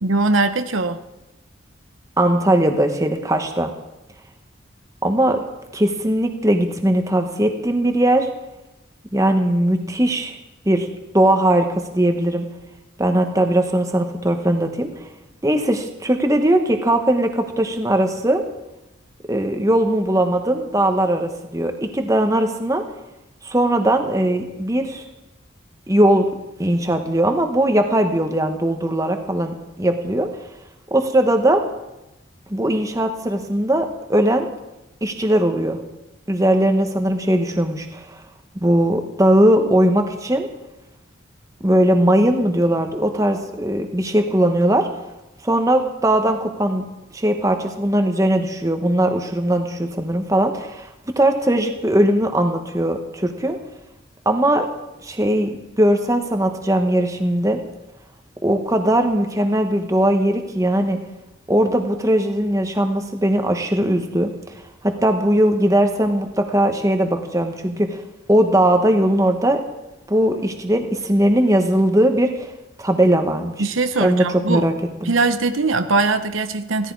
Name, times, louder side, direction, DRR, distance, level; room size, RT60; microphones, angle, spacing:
voice 1, 0.0-1.0 73.6-74.7 75.0-76.9, right 3 dB, 85° right, 9 dB, 1.0 m, -21 dB
voice 2, 2.2-3.7 5.0-5.4 5.7-8.3 9.1-10.3 10.6-10.9 11.1-12.4 13.0-14.9 15.4-18.4 19.3-22.8 23.4-25.0 25.9-26.3 26.6-30.3 30.9-31.6 32.5-34.5 35.0-35.8 36.3-38.2 38.6-40.5 41.6-44.9 45.4-46.8 47.1-50.9 51.2-53.6 54.2-54.7 55.0-57.6 58.4-61.0 61.5-64.3 64.8-68.0 68.3-69.6 70.1-72.5 72.8-73.6 74.0-74.7 75.0-75.1, right 1 dB, 15° right, 5 dB, 1.2 m, -19 dB
16.5 x 14.5 x 4.8 m, 0.97 s
head